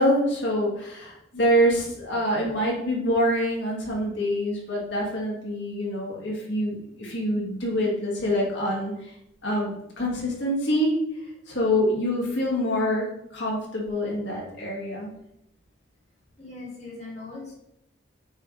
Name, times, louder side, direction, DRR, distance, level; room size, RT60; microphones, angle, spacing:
voice 1, 0.0-8.9 9.4-10.9 11.5-13.1 13.3-15.1, equal, 65° left, -3 dB, 2.2 m, -25 dB
voice 2, 16.4-17.5, left 3 dB, 35° left, -3 dB, 2.2 m, -39 dB
8.7 x 4.5 x 3.3 m, 0.80 s
head